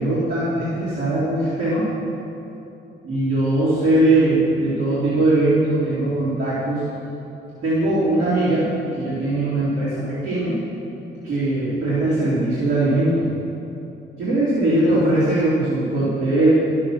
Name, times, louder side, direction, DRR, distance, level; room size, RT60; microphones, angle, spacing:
voice 1, 0.0-1.9 3.0-6.8 7.6-10.6 11.2-13.2 14.2-16.5, right 2 dB, 85° right, -11 dB, 3.0 m, -20 dB
11.5 x 7.4 x 6.1 m, 2.8 s
supercardioid pair, 60°, 21 cm